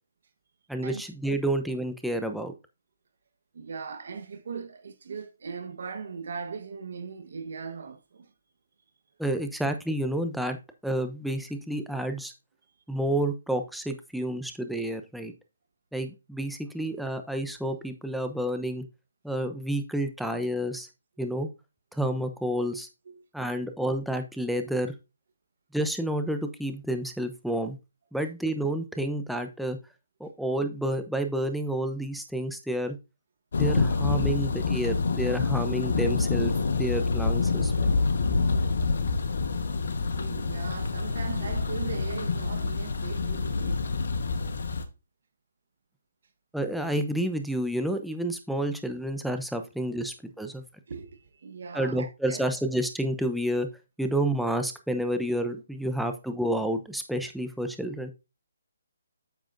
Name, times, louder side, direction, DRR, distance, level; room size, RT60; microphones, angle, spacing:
voice 1, 0.7-2.5 9.2-10.6 10.8-12.3 12.9-15.3 15.9-18.8 19.2-20.9 21.2-21.5 22.0-22.9 23.3-24.9 25.7-27.8 28.1-29.8 30.2-33.0 33.6-36.5 36.8-37.9 46.5-50.6 51.7-53.7 54.0-58.1, right 1 dB, ahead, 0.8 m, -29 dB
voice 2, 3.5-8.3 23.1-23.3 40.2-43.8 50.9-52.5, right 5 dB, 60° right, 1.3 m, -39 dB
Thunder, 33.5-44.8, left 4 dB, 65° left, 1.3 m, -27 dB
9.0 x 7.4 x 2.6 m
hypercardioid pair, 150°, 0 cm